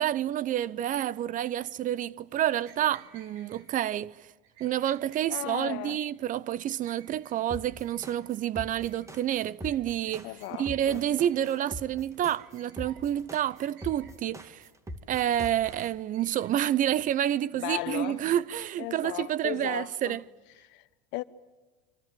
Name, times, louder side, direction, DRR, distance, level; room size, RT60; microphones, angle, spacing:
voice 1, 0.0-4.2 4.6-10.3 10.6-14.6 15.1-20.2, right 11 dB, 40° right, 0.7 m, -29 dB
sound 1, 2.3-3.7 4.4-5.3 5.6-6.1 6.5-7.4 7.6-8.3 8.7-9.3 9.6-9.8 10.1-10.8 11.1-11.7 12.2-13.0 13.4-14.1 14.7-15.5 15.8-16.5 16.8-18.7, right 7 dB, 70° right, 7.2 m, -56 dB
voice 2, 5.3-6.0 10.2-11.1 17.5-18.2 18.8-20.2 20.6-21.2, left 19 dB, 60° left, 1.3 m, -36 dB
sound 2, 7.5-15.9, equal, 15° right, 2.3 m, -42 dB
26.0 x 25.5 x 7.7 m
supercardioid pair, 105°, 21 cm